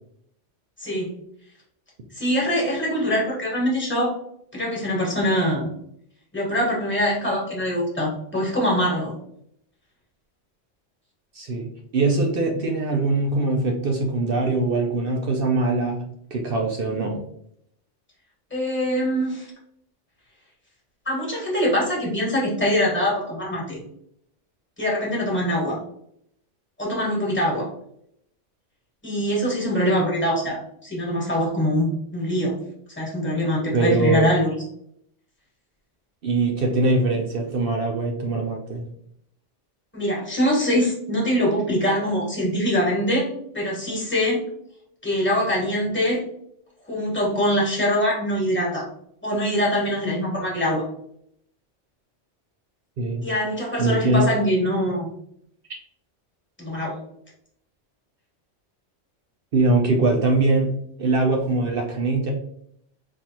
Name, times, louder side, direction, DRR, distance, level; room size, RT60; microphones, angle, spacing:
voice 1, 0.8-1.1 2.1-4.1 4.5-5.7 6.3-9.1 18.5-19.5 21.0-23.8 24.8-25.8 26.8-27.7 29.0-32.5 33.0-34.5 39.9-43.3 43.5-44.4 45.0-46.2 46.8-48.9 49.2-50.8 53.2-55.1 56.6-57.0, equal, 10° left, -3 dB, 1.5 m, -23 dB
voice 2, 11.3-16.0 16.3-17.2 33.7-34.3 36.2-38.9 53.0-53.2 53.8-54.2 59.5-60.7 61.0-62.3, right 2 dB, 55° right, 2 dB, 0.7 m, -22 dB
4.3 x 3.1 x 2.9 m, 0.71 s
omnidirectional pair, 1.2 m